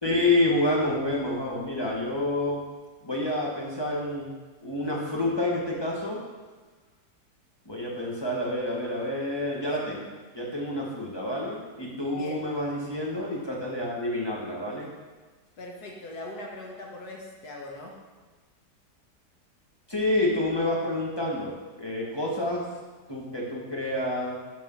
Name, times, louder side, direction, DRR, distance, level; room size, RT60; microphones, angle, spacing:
voice 1, 0.0-2.6 3.0-4.3 4.6-6.2 7.7-14.9 19.9-22.6 23.1-24.4, left 1 dB, 15° left, -4 dB, 1.9 m, -28 dB
voice 2, 12.1-12.5 15.6-18.0, left 1 dB, 65° left, -1 dB, 1.8 m, -40 dB
12.5 x 4.8 x 5.7 m, 1.4 s
omnidirectional pair, 1.8 m